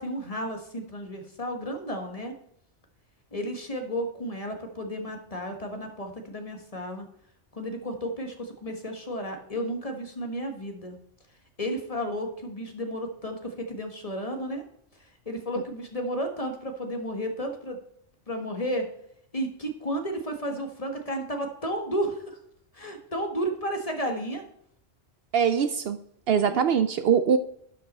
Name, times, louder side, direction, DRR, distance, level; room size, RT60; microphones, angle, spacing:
voice 1, 0.0-2.3 3.3-7.0 7.5-11.0 11.6-14.6 15.2-17.8 18.3-18.8 19.3-22.4 22.7-24.4 26.5-26.6, equal, 30° left, 4 dB, 1.4 m, -32 dB
voice 2, 25.3-26.0 26.3-27.4, right 7 dB, 65° right, 10 dB, 0.7 m, -22 dB
11.5 x 5.6 x 4.2 m, 0.70 s
omnidirectional pair, 1.2 m